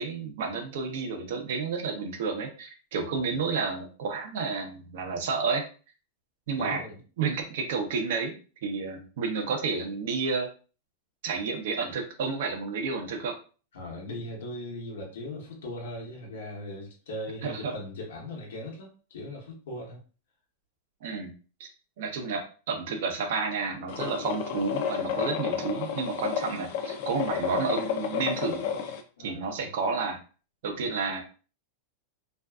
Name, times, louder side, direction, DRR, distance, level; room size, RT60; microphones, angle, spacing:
voice 1, 0.0-5.6 6.5-6.8 7.2-10.5 11.2-13.3 17.4-17.7 21.0-21.3 21.6-21.7 22.0-22.4 22.7-28.6 29.2-30.2 30.6-31.2, right 4 dB, 70° right, 5 dB, 0.6 m, -31 dB
voice 2, 6.6-7.0 13.7-20.0 29.2-29.7 30.8-30.9, left 1 dB, 85° left, -1 dB, 0.8 m, -39 dB
sound 1, 23.9-29.0, left 7 dB, 60° left, 0.4 m, -31 dB
2.5 x 2.3 x 2.2 m, 0.37 s
supercardioid pair, 145°, 0 cm